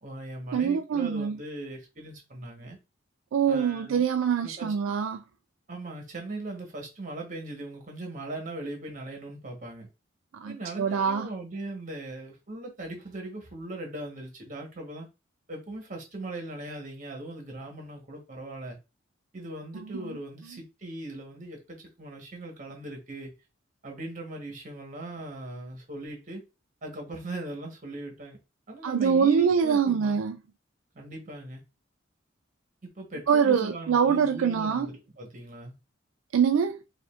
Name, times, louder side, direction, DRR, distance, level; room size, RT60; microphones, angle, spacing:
voice 1, 0.0-2.8 3.5-4.1 4.4-4.7 5.7-9.9 10.5-15.1 15.5-18.8 19.3-23.3 23.8-26.4 26.8-28.4 28.7-30.2 30.9-31.6 32.8-35.8, right 2 dB, 40° right, 1.2 m, -39 dB
voice 2, 0.5-1.4 3.3-5.2 10.4-11.3 19.7-20.2 28.8-30.4 33.3-34.9 36.3-36.8, right 7 dB, 80° right, 0.3 m, -24 dB
4.9 x 2.6 x 2.4 m
head